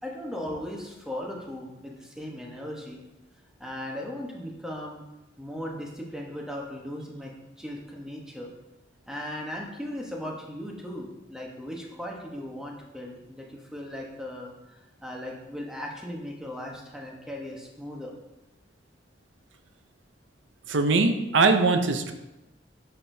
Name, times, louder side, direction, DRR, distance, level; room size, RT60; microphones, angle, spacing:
voice 1, 0.0-3.0 3.6-5.0 5.4-7.3 7.6-8.5 9.1-18.2, left 1 dB, 5° right, -2 dB, 1.1 m, -37 dB
voice 2, 20.7-22.1, right 3 dB, 85° right, 7 dB, 0.7 m, -21 dB
9.6 x 6.6 x 2.7 m, 0.97 s
head